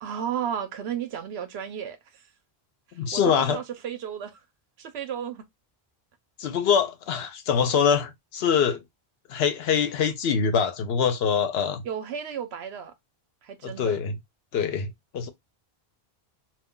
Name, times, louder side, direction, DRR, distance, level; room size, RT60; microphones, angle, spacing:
voice 1, 0.0-2.3 3.1-4.4 4.8-5.5 11.8-12.9 13.4-14.0, right 9 dB, 90° right, 0.9 m, -33 dB
voice 2, 3.0-3.6 6.4-8.8 9.3-11.8 13.6-14.1 14.5-15.3, left 7 dB, 80° left, 0.8 m, -24 dB
2.3 x 2.2 x 3.5 m
omnidirectional pair, 1.0 m